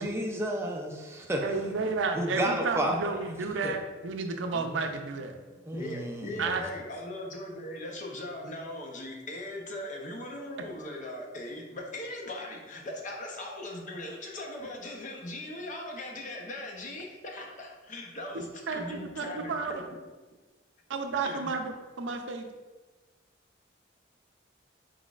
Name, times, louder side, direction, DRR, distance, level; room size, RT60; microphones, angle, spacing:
voice 1, 0.0-1.4 2.2-3.1 3.6-3.7 4.5-4.7 5.7-6.6, right 1 dB, 15° right, 1 dB, 0.5 m, -31 dB
voice 2, 1.4-5.4 6.4-6.6 18.7-19.7 20.9-22.5, right 4 dB, 80° right, 5 dB, 0.5 m, -32 dB
voice 3, 5.7-19.8 21.2-21.5, left 1 dB, 40° left, 0 dB, 0.7 m, -39 dB
4.5 x 4.0 x 2.4 m, 1.3 s
head